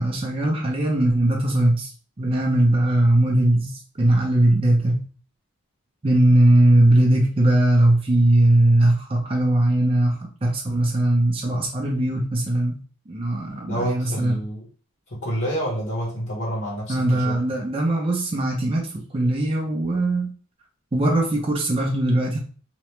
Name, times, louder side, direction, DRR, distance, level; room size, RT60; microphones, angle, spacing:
voice 1, 0.0-1.9 2.2-5.1 6.0-12.8 13.1-14.4 16.9-20.3 20.9-22.4, right 1 dB, 25° right, -1 dB, 0.5 m, -20 dB
voice 2, 13.7-14.6 15.1-17.4, equal, 55° left, -5 dB, 1.1 m, -28 dB
2.9 x 2.1 x 3.1 m, 0.39 s
head